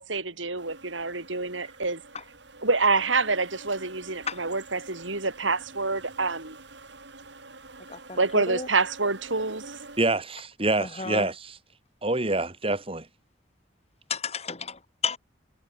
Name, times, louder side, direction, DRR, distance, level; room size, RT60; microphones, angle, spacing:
voice 1, 0.0-2.0 2.6-6.6 8.2-9.6, right 3 dB, 90° right, 5.2 m, -27 dB
sound 1, 0.6-10.1, right 3 dB, 65° right, 7.1 m, -47 dB
voice 2, 7.9-8.7 10.8-11.3 14.1-15.2, left 5 dB, 35° left, 3.3 m, -33 dB
voice 3, 10.0-11.4 12.0-13.1, right 2 dB, 30° right, 2.2 m, -26 dB
head